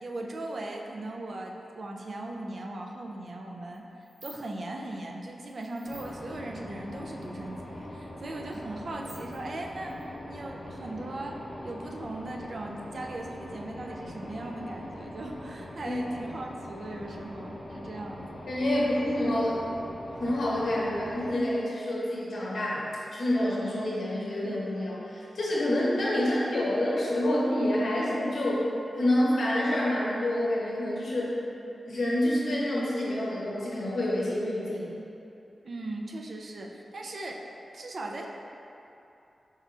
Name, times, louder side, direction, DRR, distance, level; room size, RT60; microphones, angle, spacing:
voice 1, 0.0-18.3 35.6-37.5 37.7-38.3, right 2 dB, 50° right, 1 dB, 0.3 m, -38 dB
sound 1, 3.7-4.4 5.5-6.1 7.2-7.3 7.5-7.6 8.4-8.5 8.9-10.4, right 1 dB, 85° right, 1.5 m, -50 dB
sound 2, 5.8-21.4, left 1 dB, 30° left, 0.7 m, -42 dB
voice 2, 18.5-19.6 20.2-28.6 29.0-31.3 31.8-34.9, left 1 dB, 70° left, -6 dB, 0.8 m, -27 dB
4.2 x 3.5 x 2.4 m, 2.8 s
wide cardioid pair, 155°, 0 cm